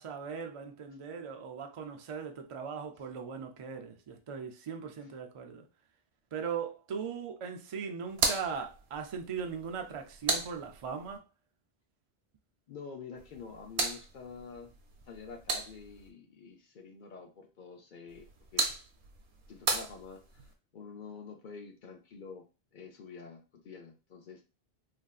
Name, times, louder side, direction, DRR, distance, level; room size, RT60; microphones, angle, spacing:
voice 1, 0.0-5.7 6.3-11.2, right 6 dB, 50° right, 0.4 m, -39 dB
sound 1, 8.1-11.2 13.2-16.1 18.1-20.5, right 4 dB, 80° right, 0.9 m, -36 dB
voice 2, 12.7-14.7 15.1-18.6 19.5-22.4 22.7-24.4, left 5 dB, 60° left, 0.6 m, -48 dB
3.1 x 2.6 x 2.3 m
omnidirectional pair, 1.0 m